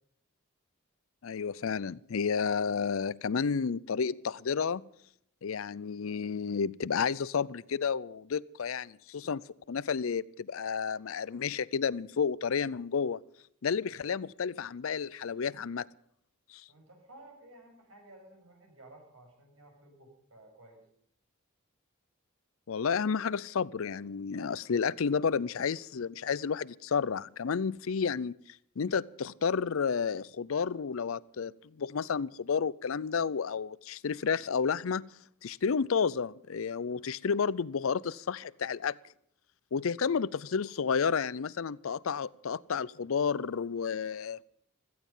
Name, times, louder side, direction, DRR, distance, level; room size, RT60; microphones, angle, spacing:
voice 1, 1.2-4.8 5.4-9.4 9.7-13.2 13.6-15.9 16.5-16.6 22.7-28.3 28.8-35.0 35.4-39.0 39.7-44.4, left 6 dB, 75° left, 0.5 m, -31 dB
voice 2, 16.7-20.8 40.0-40.2, right 1 dB, 85° right, 6.6 m, -55 dB
16.5 x 14.5 x 5.5 m
head